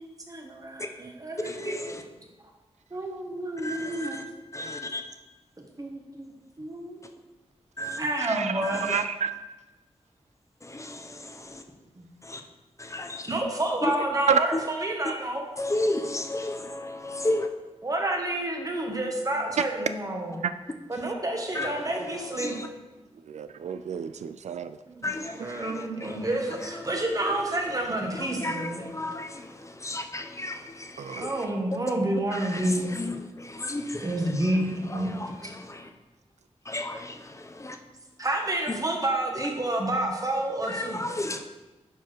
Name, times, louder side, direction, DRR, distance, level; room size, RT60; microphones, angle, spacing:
voice 1, 0.0-1.8 2.2-2.3 2.9-4.2 5.6-7.0 8.0-8.9 12.0-12.1 13.2-15.4 17.8-20.4 20.9-22.7 24.9-29.0 31.1-32.9 34.0-35.1 35.4-35.5 38.2-41.0, right 1 dB, 30° right, 1 dB, 1.5 m, -29 dB
voice 2, 1.4-2.0 3.6-4.2 4.5-5.0 7.8-8.0 8.6-9.0 10.6-11.6 12.2-12.4 12.8-13.2 14.5-14.6 15.6-17.5 21.5-21.7 22.4-22.7 25.0-26.2 28.2-31.3 32.3-34.1 34.9-35.9 36.7-37.8 38.7-38.8 40.7-41.4, left 1 dB, 25° left, 5 dB, 0.7 m, -33 dB
voice 3, 8.2-9.4 14.3-14.4 20.4-20.5 23.3-24.8 31.0-31.3, right 7 dB, 85° right, 11 dB, 0.4 m, -29 dB
11.0 x 4.7 x 4.6 m, 1.1 s
wide cardioid pair, 100°, 12 cm